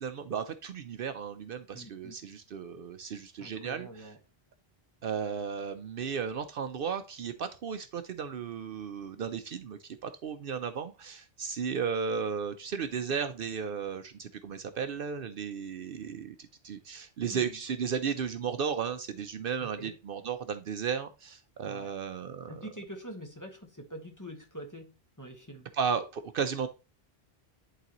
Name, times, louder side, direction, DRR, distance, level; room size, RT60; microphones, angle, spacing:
voice 1, 0.0-4.1 5.0-22.6 25.7-26.7, right 6 dB, 65° right, 0.7 m, -34 dB
voice 2, 1.7-2.1 3.4-4.2 17.3-17.6 19.6-19.9 21.7-21.9 22.5-25.7, equal, 20° left, 1.2 m, -45 dB
10.5 x 4.0 x 2.9 m
omnidirectional pair, 1.1 m